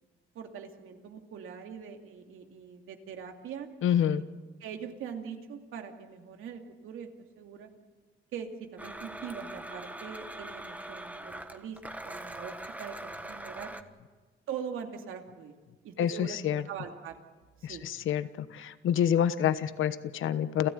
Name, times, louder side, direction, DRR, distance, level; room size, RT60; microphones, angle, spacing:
voice 1, 0.3-3.7 4.2-4.3 4.6-7.1 7.4-7.7 8.3-13.7 14.5-15.5 15.8-17.2 17.7-17.8, right 7 dB, 85° right, 4 dB, 2.6 m, -42 dB
voice 2, 3.8-4.2 16.0-16.6 17.6-18.3 18.5-20.7, left 9 dB, 75° left, 12 dB, 1.2 m, -27 dB
Domestic sounds home sounds, 8.8-13.8, right 1 dB, 5° right, 1.4 m, -42 dB
29.5 x 14.5 x 9.2 m, 1.3 s
cardioid pair, 100°, 21 cm